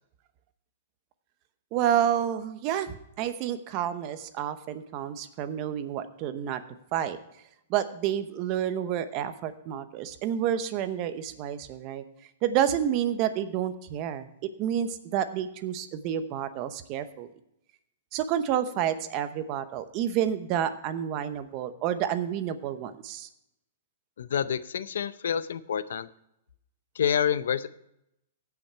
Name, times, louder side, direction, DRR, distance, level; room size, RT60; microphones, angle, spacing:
voice 1, 1.7-6.6 6.9-7.2 7.7-12.0 12.4-14.3 14.6-17.3 18.1-23.3, right 10 dB, 35° right, 11 dB, 0.9 m, -29 dB
voice 2, 24.2-26.1 27.0-27.7, left 8 dB, 80° left, 15 dB, 0.6 m, -28 dB
16.0 x 6.0 x 4.4 m, 0.81 s
hypercardioid pair, 145°, 0 cm